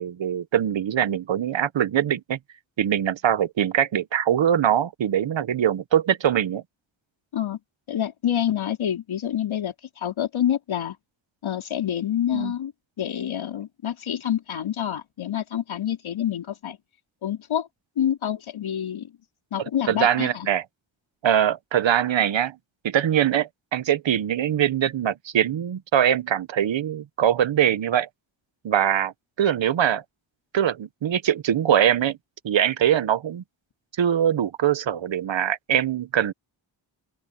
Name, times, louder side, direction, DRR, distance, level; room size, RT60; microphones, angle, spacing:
voice 1, 0.0-2.4 2.8-6.6 12.3-12.5 19.9-20.6 21.2-22.5 22.8-28.1 28.6-29.1 29.4-30.0 30.5-32.2 32.4-33.4 34.0-36.3, right 10 dB, 70° right, 1.2 m, -22 dB
voice 2, 7.9-11.0 11.4-12.7 13.0-16.8 17.2-17.7 18.0-19.1 19.5-20.5, left 10 dB, 90° left, 3.9 m, -27 dB
open air
wide cardioid pair, 100°, 46 cm